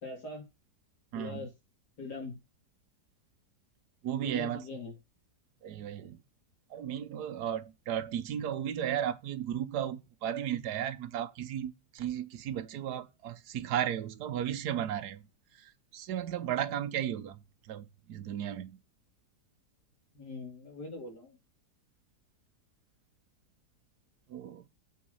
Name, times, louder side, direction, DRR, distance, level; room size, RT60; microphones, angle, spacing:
voice 1, 0.0-0.4 1.1-1.5 2.0-2.4 4.2-5.0 20.1-21.4, left 3 dB, 85° left, 3.3 m, -42 dB
voice 2, 4.0-4.6 5.6-6.2 6.7-15.2 15.6-17.4 17.7-18.8 24.3-24.6, right 10 dB, 80° right, 1.3 m, -35 dB
8.0 x 5.9 x 5.4 m
omnidirectional pair, 1.7 m